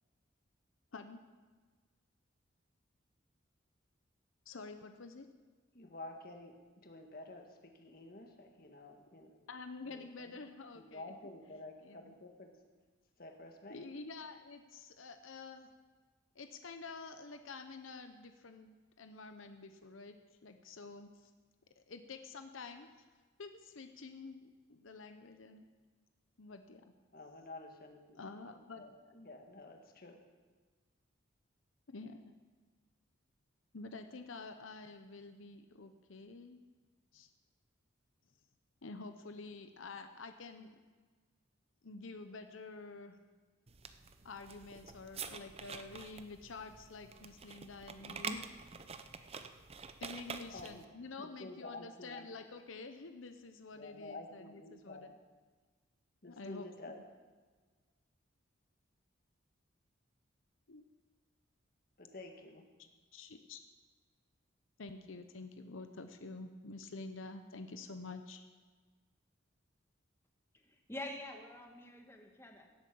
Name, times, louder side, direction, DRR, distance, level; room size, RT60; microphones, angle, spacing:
voice 1, 4.5-5.3 9.5-11.0 11.8-12.1 13.7-15.7 16.3-20.2 20.4-21.3 21.8-22.9 23.4-25.7 26.4-26.9 28.1-28.8 31.9-32.3 33.7-36.6 37.1-37.3 38.8-40.8 41.8-43.2 44.2-48.4 50.0-55.1 56.3-56.9 60.7-60.8 63.1-63.6 64.8-68.5, left 3 dB, 80° left, 8 dB, 0.8 m, -49 dB
voice 2, 5.7-9.5 9.9-10.4 10.7-12.6 13.2-13.8 27.1-28.2 28.6-30.2 50.5-50.8 51.2-52.3 53.7-55.1 56.2-57.0 62.0-62.7, left 2 dB, 45° left, 4 dB, 1.6 m, -50 dB
sound 1, 43.7-50.9, right 5 dB, 30° right, 0.6 m, -47 dB
voice 3, 70.5-72.7, left 1 dB, 10° left, 2 dB, 1.3 m, -47 dB
16.5 x 8.6 x 6.9 m, 1.4 s
head